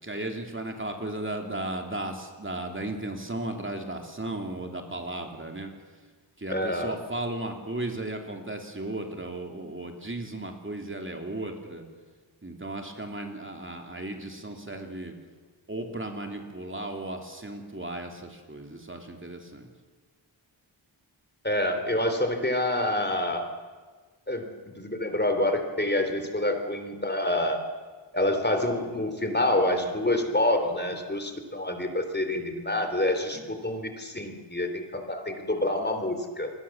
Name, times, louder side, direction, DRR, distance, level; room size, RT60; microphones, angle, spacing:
voice 1, 0.0-5.7 6.4-11.8 12.4-15.1 15.7-19.7 33.3-33.4, right 2 dB, 25° right, 3 dB, 3.2 m, -35 dB
voice 2, 6.5-7.0 21.4-23.5 24.3-27.6 28.1-36.5, left 1 dB, 20° left, 6 dB, 3.4 m, -27 dB
28.5 x 22.0 x 7.3 m, 1.4 s
wide cardioid pair, 80°, 47 cm